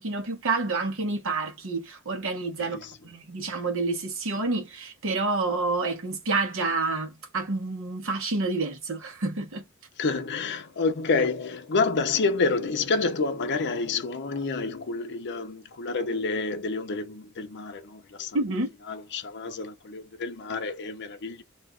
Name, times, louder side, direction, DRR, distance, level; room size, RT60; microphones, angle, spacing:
voice 1, 0.0-2.8 3.0-9.6 18.3-18.7, right 3 dB, 65° right, 0.9 m, -28 dB
voice 2, 2.6-2.9 10.0-18.4 18.9-21.4, left 4 dB, 55° left, 0.6 m, -28 dB
2.4 x 2.4 x 3.5 m
head